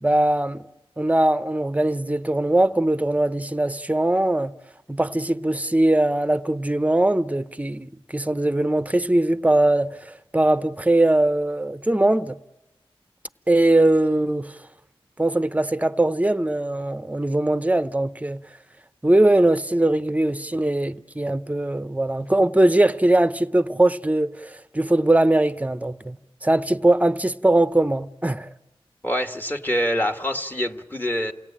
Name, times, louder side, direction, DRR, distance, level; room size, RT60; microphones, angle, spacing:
voice 1, 0.0-0.7 1.0-4.5 4.9-12.4 13.5-14.5 15.2-18.4 19.0-28.5, right 1 dB, 15° right, 0.8 m, -21 dB
voice 2, 29.0-31.3, equal, 20° left, 1.8 m, -25 dB
29.0 x 17.0 x 8.9 m
cardioid pair, 40°, 10 cm